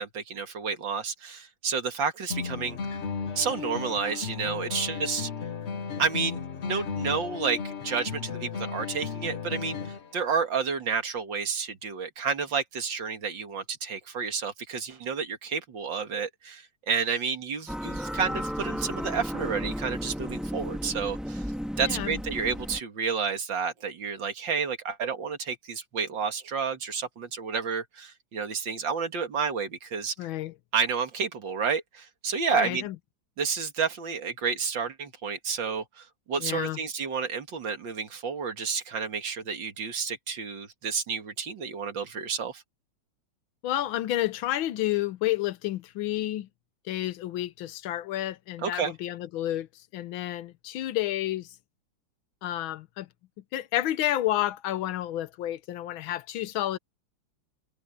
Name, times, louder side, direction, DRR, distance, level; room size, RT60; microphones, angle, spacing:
voice 1, 0.0-2.8 3.4-5.3 6.0-21.4 21.8-30.1 30.7-32.8 33.4-42.6 48.6-48.9, right 5 dB, 65° right, 2.6 m, -30 dB
sound 1, 2.3-10.3, left 6 dB, 40° left, 1.1 m, -35 dB
sound 2, 17.7-22.8, equal, ahead, 2.1 m, -34 dB
voice 2, 21.9-22.2 30.2-30.5 32.5-33.0 36.4-36.8 43.6-46.5 46.9-49.7 49.9-51.5 52.4-53.1 53.5-56.8, left 14 dB, 80° left, 1.5 m, -30 dB
omnidirectional pair, 2.2 m